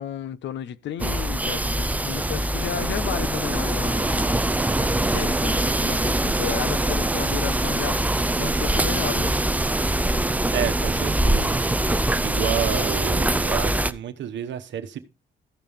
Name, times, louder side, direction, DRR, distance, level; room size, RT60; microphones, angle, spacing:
voice 1, 0.0-9.3, left 9 dB, 65° left, 0.6 m, -33 dB
sound 1, 1.0-13.9, right 1 dB, 10° right, 0.4 m, -23 dB
voice 2, 10.5-11.6 12.2-15.0, right 9 dB, 65° right, 1.1 m, -29 dB
15.0 x 5.5 x 3.5 m
cardioid pair, 90°, 20 cm